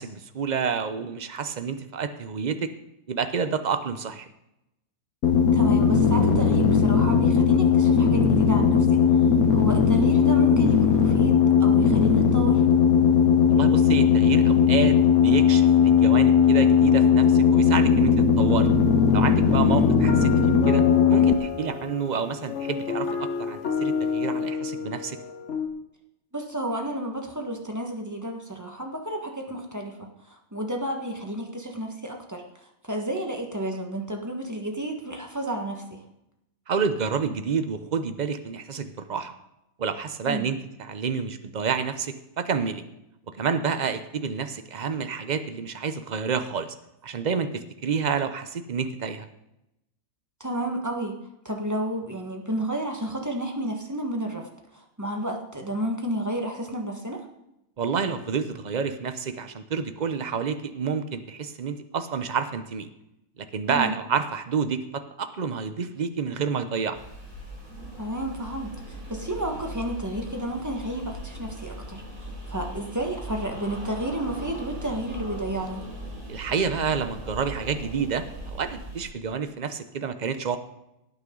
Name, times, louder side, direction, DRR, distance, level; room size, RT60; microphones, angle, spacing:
voice 1, 0.0-2.7 3.1-4.3 13.5-18.7 19.1-20.3 20.7-20.8 21.1-25.2 36.7-39.3 39.8-42.8 43.4-46.7 47.0-49.3 57.8-62.9 63.4-67.0 76.3-78.2 78.5-80.6, right 6 dB, 35° right, 10 dB, 0.8 m, -29 dB
sound 1, 5.2-21.3, left 6 dB, 85° left, 1.6 m, -18 dB
voice 2, 5.5-12.7 19.7-19.9 26.3-36.0 40.2-40.5 50.4-51.2 51.4-57.2 63.7-63.9 68.0-75.8, right 1 dB, 10° right, 2 dB, 1.5 m, -31 dB
sound 2, 18.5-25.7, left 5 dB, 55° left, 1.6 m, -31 dB
sound 3, 66.9-79.1, right 1 dB, 70° right, 4.2 m, -39 dB
17.0 x 9.1 x 3.9 m, 0.87 s
omnidirectional pair, 1.5 m